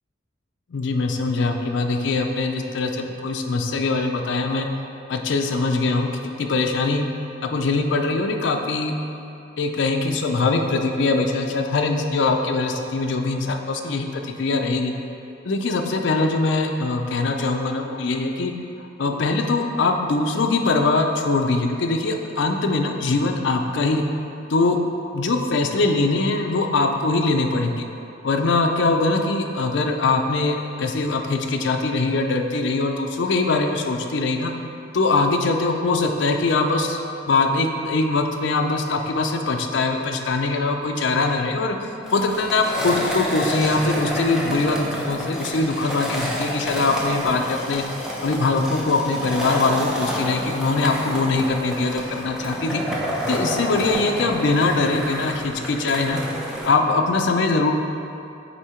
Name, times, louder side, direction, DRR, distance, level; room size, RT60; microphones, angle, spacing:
voice 1, 0.7-4.7 5.1-6.1 6.4-7.0 7.4-8.9 9.6-14.9 15.4-18.5 19.0-24.1 24.5-24.8 25.1-27.9 28.2-34.5 34.9-37.0 37.3-41.8 42.1-47.8 48.2-52.8 53.3-56.2 56.7-57.7, left 3 dB, 65° left, 4 dB, 0.5 m, -22 dB
Skateboard, 42.0-56.7, equal, 5° right, 0.7 m, -29 dB
8.2 x 2.8 x 4.4 m, 2.7 s
head